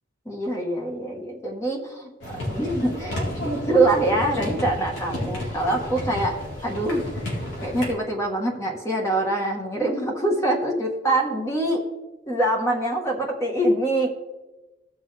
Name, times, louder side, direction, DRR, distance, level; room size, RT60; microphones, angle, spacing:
voice 1, 0.3-2.1 2.5-6.4 6.6-7.0 7.6-11.8 12.3-14.1, right 1 dB, 15° left, 0 dB, 1.2 m, -24 dB
sound 1, 2.2-7.9, left 1 dB, 85° left, 3.7 m, -31 dB
16.0 x 6.2 x 3.3 m, 1.1 s
head